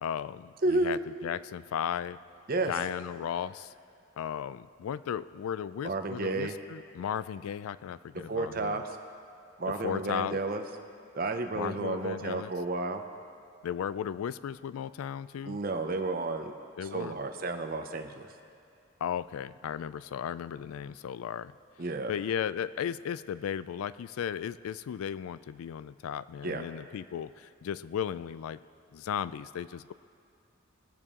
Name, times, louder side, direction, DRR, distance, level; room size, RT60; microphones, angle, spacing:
voice 1, 0.0-2.2 2.7-3.7 4.2-8.8 9.8-10.4 11.5-12.5 13.6-15.6 16.8-17.2 19.0-21.5 22.1-28.6 28.9-29.9, left 8 dB, 85° left, 17 dB, 0.3 m, -35 dB
voice 2, 0.6-1.0 2.5-2.7 5.8-6.5 8.3-8.8 9.6-10.6 11.1-13.0 15.4-16.6 16.8-18.2 21.8-22.1 26.4-26.6, right 2 dB, 45° right, 6 dB, 0.7 m, -31 dB
19.5 x 6.8 x 3.6 m, 2.5 s
head